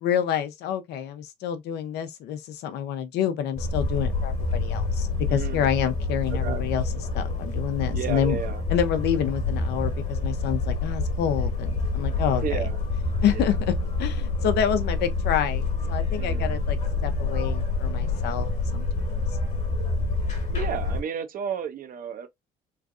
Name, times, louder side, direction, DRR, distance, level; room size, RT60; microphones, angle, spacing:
voice 1, 0.0-6.8 7.1-8.4 8.7-12.7 13.2-19.2, left 9 dB, 80° left, 0.6 m, -28 dB
sound 1, 3.6-21.0, left 3 dB, 45° left, 1.2 m, -27 dB
voice 2, 5.3-5.7 6.3-6.6 7.9-8.6 12.4-12.8 13.3-13.5 16.1-16.5 20.5-22.3, right 8 dB, 55° right, 0.7 m, -32 dB
3.1 x 2.4 x 2.5 m
cardioid pair, 110°, 17 cm